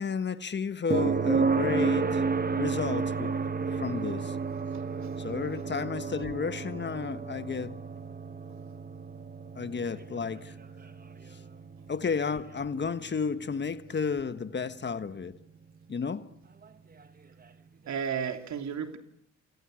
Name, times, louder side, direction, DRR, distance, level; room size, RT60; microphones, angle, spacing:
voice 1, 0.0-2.2 2.6-3.3 3.7-4.4 5.2-7.8 9.5-10.6 11.9-15.4 15.9-16.3, left 5 dB, 35° left, 1.5 m, -32 dB
sound 1, 0.9-14.8 17.0-17.1, right 4 dB, 30° right, 1.7 m, -32 dB
voice 2, 4.7-5.3 8.5-8.6 11.8-11.9 17.9-19.0, right 7 dB, 65° right, 3.2 m, -35 dB
29.5 x 28.0 x 6.5 m
cardioid pair, 90°, 30 cm